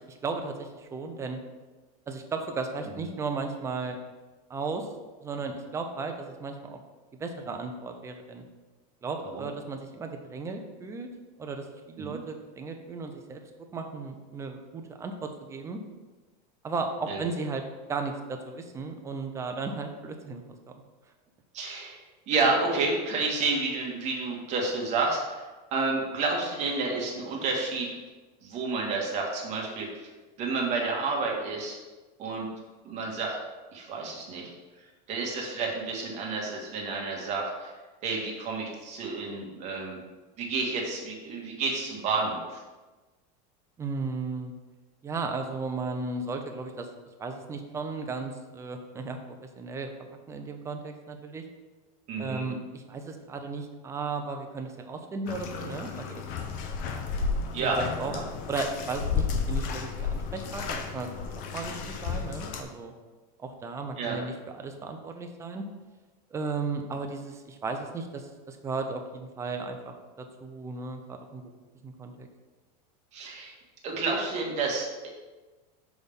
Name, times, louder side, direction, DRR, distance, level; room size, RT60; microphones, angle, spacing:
voice 1, 0.1-1.4 2.1-4.0 4.5-4.9 5.2-6.8 7.2-8.4 9.0-11.1 11.4-13.4 13.7-15.8 16.6-17.6 17.9-20.5 43.8-44.5 45.0-46.9 47.2-49.2 49.6-49.9 50.3-51.4 52.2-56.2 57.6-58.1 58.5-61.1 61.5-61.8 62.0-62.9 63.4-65.6 66.3-71.4 71.8-72.3, right 4 dB, 15° right, 4 dB, 0.5 m, -35 dB
voice 2, 21.5-22.0 22.3-25.4 25.7-27.9 28.4-29.9 30.4-31.8 32.2-32.5 32.8-33.4 33.7-34.5 35.1-37.7 38.0-40.0 40.4-42.6 52.1-52.4 57.5-58.2 64.0-64.2 73.1-73.5 73.8-74.9, right 3 dB, 35° right, -1 dB, 1.5 m, -30 dB
Bathtub (filling or washing), 55.3-62.6, left 5 dB, 40° left, 0.6 m, -32 dB
6.2 x 3.5 x 5.3 m, 1.2 s
supercardioid pair, 155°, 21 cm